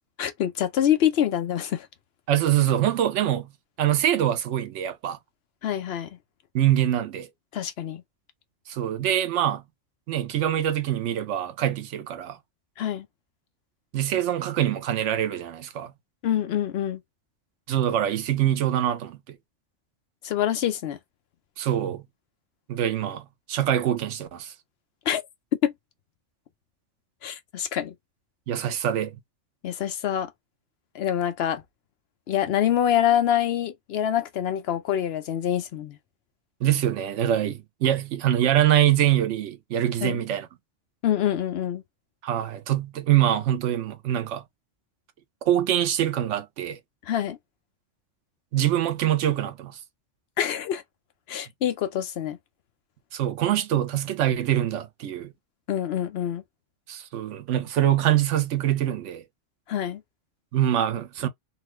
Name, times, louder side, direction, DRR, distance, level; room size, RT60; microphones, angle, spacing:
voice 1, 0.2-1.9 5.6-6.1 7.5-8.0 12.8-13.1 16.2-17.0 20.2-21.0 25.1-25.2 25.6-25.7 27.2-27.9 29.6-30.3 30.9-31.6 32.3-36.0 40.0-40.2 41.0-41.8 47.1-47.4 50.4-50.8 51.3-52.4 55.7-56.4 59.7-60.0, left 10 dB, 65° left, 0.7 m, -25 dB
voice 2, 2.3-3.5 3.8-5.2 6.5-7.3 8.7-9.6 10.1-12.4 13.9-15.9 17.7-19.4 21.6-22.0 22.7-24.5 28.5-29.2 36.6-40.5 42.2-44.4 45.4-46.8 48.5-49.8 53.1-55.3 56.9-59.2 60.5-61.3, right 11 dB, 85° right, 0.9 m, -24 dB
2.9 x 2.2 x 3.0 m
omnidirectional pair, 1.2 m